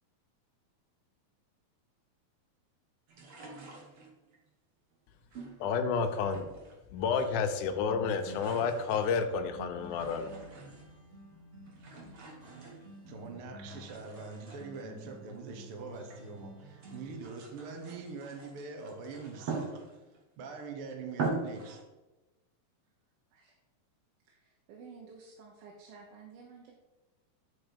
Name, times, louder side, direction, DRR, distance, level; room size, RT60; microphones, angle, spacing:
sound 1, 3.1-4.4 5.3-6.8 7.0-7.7 7.9-11.0 11.7-13.3 13.7-16.3 16.7-20.2 20.7-20.8 21.1-21.8, right 4 dB, 50° right, 2.0 m, -43 dB
voice 1, 5.6-6.4 6.9-10.3, left 5 dB, 75° left, 6 dB, 2.0 m, -30 dB
sound 2, 6.9-17.2, right 1 dB, 30° right, 1.6 m, -51 dB
voice 2, 13.1-19.8 20.4-21.8, right 4 dB, 65° right, 3 dB, 1.4 m, -43 dB
voice 3, 24.3-26.7, right 5 dB, 85° right, -1 dB, 2.9 m, -52 dB
10.5 x 4.4 x 5.2 m, 1.1 s
omnidirectional pair, 4.1 m